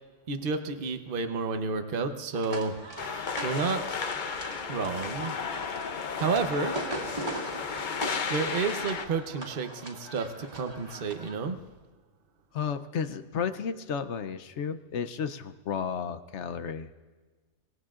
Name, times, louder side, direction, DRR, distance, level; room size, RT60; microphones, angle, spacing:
voice 1, 0.3-2.7 3.1-3.8 4.7-5.3 6.2-6.8 8.3-11.6, right 4 dB, 45° right, 7 dB, 1.0 m, -30 dB
sound 1, 2.3-11.3, right 1 dB, 30° right, 2.1 m, -40 dB
sound 2, 3.0-9.1, left 5 dB, 45° left, 0.7 m, -34 dB
voice 2, 12.5-16.9, left 7 dB, 65° left, 11 dB, 1.0 m, -33 dB
25.0 x 19.0 x 2.5 m, 1.3 s
omnidirectional pair, 1.3 m